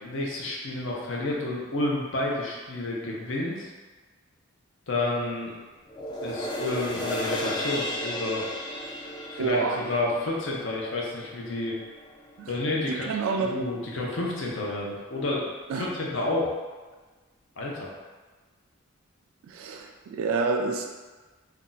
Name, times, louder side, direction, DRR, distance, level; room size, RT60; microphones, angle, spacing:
voice 1, 0.0-3.7 4.9-5.5 6.2-8.5 9.3-11.8 12.5-13.1 13.3-15.4 15.7-16.5 17.6-17.9, left 2 dB, 65° left, -3 dB, 0.6 m, -30 dB
sound 1, 5.9-12.5 12.9-13.0, left 1 dB, 20° left, 0.3 m, -34 dB
voice 2, 9.4-9.8 12.4-12.5 12.9-13.6 15.7-15.9 19.4-20.9, right 4 dB, 80° right, 3 dB, 0.3 m, -28 dB
2.6 x 2.3 x 3.8 m, 1.3 s
head